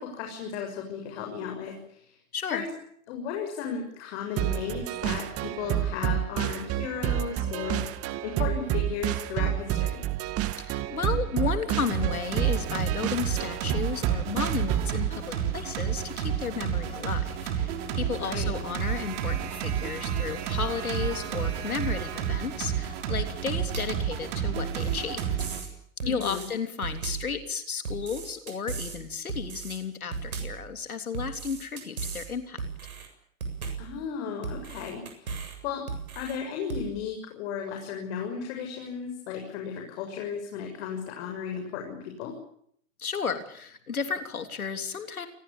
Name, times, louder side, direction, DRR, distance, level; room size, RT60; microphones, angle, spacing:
voice 1, 0.0-2.0 2.5-2.7 3.1-10.0 18.2-18.6 26.0-26.5 33.8-35.3 35.6-35.8 36.2-42.3, left 7 dB, 55° left, 3 dB, 7.0 m, -35 dB
voice 2, 2.3-2.6 10.5-25.2 25.6-25.7 26.1-32.6 43.0-45.3, left 6 dB, 90° left, 8 dB, 3.4 m, -33 dB
sound 1, 4.4-15.0, right 12 dB, 35° right, 2.0 m, -29 dB
sound 2, 11.9-25.6, right 9 dB, 55° right, 6.1 m, -31 dB
sound 3, 23.7-24.0 24.6-25.7 26.0-26.5 26.8-27.3 27.8-29.0 29.3-29.8 30.1-30.6 31.1-32.3 32.6-33.1 33.4-33.9 34.4-35.6 35.9-36.4 36.7-36.9, right 5 dB, 85° right, 7.6 m, -36 dB
28.5 x 20.0 x 8.9 m, 0.67 s
hypercardioid pair, 110°, 42 cm